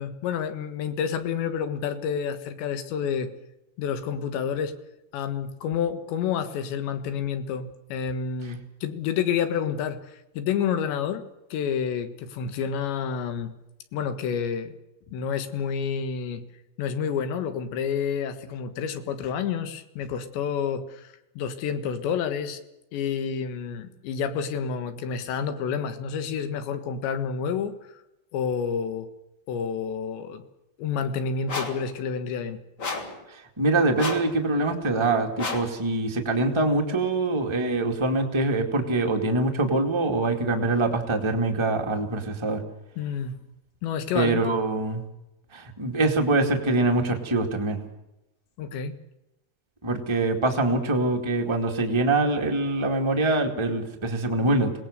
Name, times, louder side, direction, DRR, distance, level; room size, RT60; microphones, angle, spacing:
voice 1, 0.0-3.3 3.8-4.8 5.1-11.3 11.5-13.5 13.9-14.8 15.1-16.4 16.8-22.6 22.9-27.8 28.3-29.1 29.5-30.4 30.8-32.6 43.0-43.4 43.8-44.6 48.6-49.0, left 7 dB, 80° left, 9 dB, 3.7 m, -29 dB
sound 1, 31.5-31.9 32.8-33.2 34.0-34.3 35.4-35.8, left 3 dB, 30° left, 3.0 m, -31 dB
voice 2, 33.3-42.6 44.1-45.0 45.5-47.8 49.8-54.7, right 2 dB, 20° right, 2 dB, 0.7 m, -24 dB
26.0 x 19.0 x 6.7 m, 0.93 s
omnidirectional pair, 5.1 m